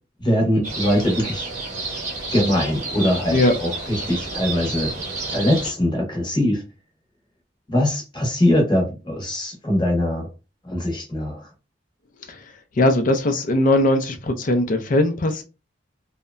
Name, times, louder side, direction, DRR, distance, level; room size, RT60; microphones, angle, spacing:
voice 1, 0.2-1.5 2.3-4.9 5.3-6.6 7.7-10.3 10.6-11.5, left 1 dB, 25° left, 0.8 m, -22 dB
sound 1, 0.6-5.7, right 3 dB, 40° right, 0.7 m, -30 dB
voice 2, 12.8-15.4, left 1 dB, 45° left, 0.5 m, -19 dB
2.8 x 2.1 x 2.4 m
head